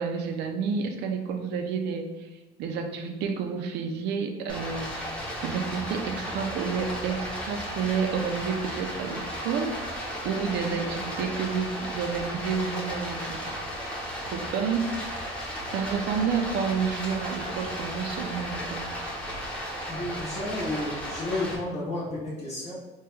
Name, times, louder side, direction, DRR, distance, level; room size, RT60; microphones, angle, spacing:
voice 1, 0.0-2.1 2.6-4.9 5.4-13.4 14.3-14.8 15.7-18.9, right 6 dB, 85° right, 5 dB, 0.5 m, -30 dB
Stream, 4.5-21.5, equal, 5° left, 0.9 m, -35 dB
voice 2, 19.9-22.7, left 2 dB, 40° left, -10 dB, 1.2 m, -32 dB
3.4 x 2.3 x 3.2 m, 1.2 s
cardioid pair, 110°, 17 cm